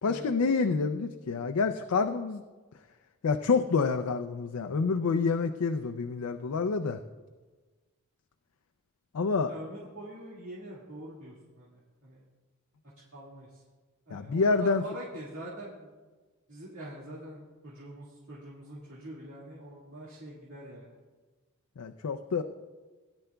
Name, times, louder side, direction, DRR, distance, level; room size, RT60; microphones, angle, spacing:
voice 1, 0.0-2.4 3.2-7.0 9.1-9.5 14.1-14.8 21.8-22.4, left 4 dB, 85° left, 6 dB, 0.5 m, -28 dB
voice 2, 9.5-12.2 13.1-13.6 14.1-15.9 16.5-21.0, right 1 dB, 65° right, -7 dB, 2.0 m, -44 dB
17.5 x 10.5 x 2.3 m, 1.3 s
head